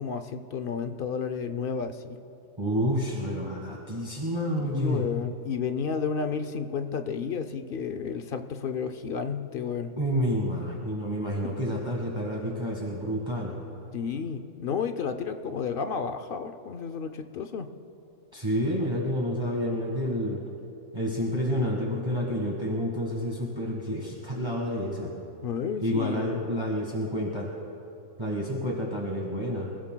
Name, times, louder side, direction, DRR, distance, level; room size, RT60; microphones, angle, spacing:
voice 1, 0.0-2.2 4.6-9.9 13.9-17.7 25.4-26.5, left 6 dB, 55° left, 8 dB, 0.7 m, -32 dB
voice 2, 2.6-5.1 10.0-13.6 18.3-20.4 20.9-25.1 25.8-27.5 28.2-29.7, equal, 20° right, -3 dB, 1.6 m, -29 dB
27.5 x 16.0 x 2.3 m, 2.9 s
omnidirectional pair, 1.4 m